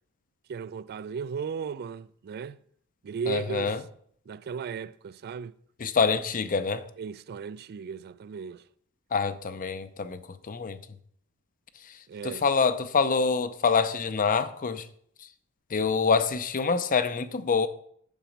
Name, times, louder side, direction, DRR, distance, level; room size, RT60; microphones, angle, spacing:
voice 1, 0.5-2.6 3.0-3.8 4.3-5.5 7.0-8.6 12.1-12.4, right 6 dB, 45° right, 0.3 m, -36 dB
voice 2, 3.3-3.8 5.8-6.9 9.1-10.2 10.5-10.8 11.9-12.0 12.2-14.9 15.7-17.7, left 5 dB, 40° left, 0.6 m, -26 dB
7.2 x 6.9 x 5.2 m
head